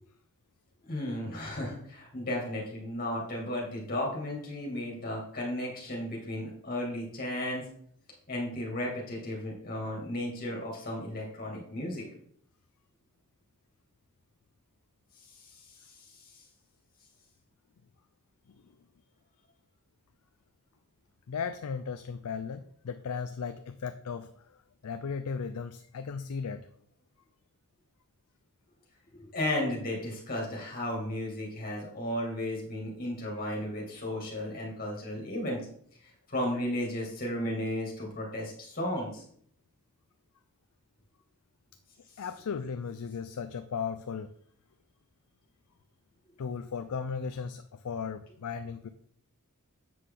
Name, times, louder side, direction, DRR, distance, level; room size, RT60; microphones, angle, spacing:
voice 1, 0.8-7.6 8.3-12.1 15.5-15.6 15.8-16.2 29.1-35.6 36.3-39.2, left 1 dB, 40° left, -2 dB, 2.5 m, -34 dB
voice 2, 21.3-24.3 24.8-26.6 42.2-44.3 46.4-48.9, left 6 dB, 80° left, 9 dB, 0.4 m, -36 dB
7.7 x 6.5 x 3.9 m, 0.63 s
head